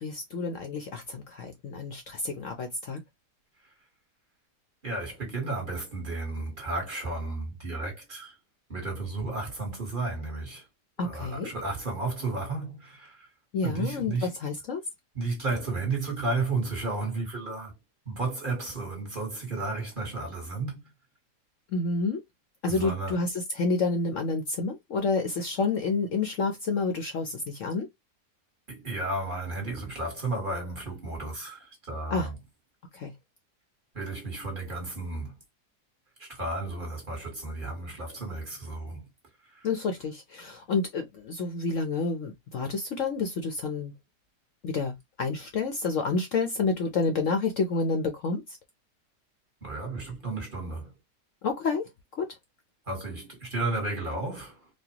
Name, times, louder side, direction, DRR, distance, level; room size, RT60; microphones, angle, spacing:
voice 1, 0.0-3.0 11.0-11.5 13.5-14.8 21.7-22.2 22.6-23.3 23.5-27.9 32.1-32.3 32.9-33.1 39.6-43.9 44.6-48.4 51.4-51.9 52.2-52.3, left 4 dB, 60° left, 0.9 m, -29 dB
voice 2, 4.8-8.3 8.7-10.7 11.0-13.3 13.6-14.3 15.1-17.7 18.0-20.9 22.7-23.2 28.7-32.4 33.9-35.3 36.2-39.1 39.5-39.7 49.6-50.9 52.9-54.7, right 3 dB, 35° right, 1.4 m, -33 dB
4.3 x 2.3 x 2.9 m
omnidirectional pair, 1.8 m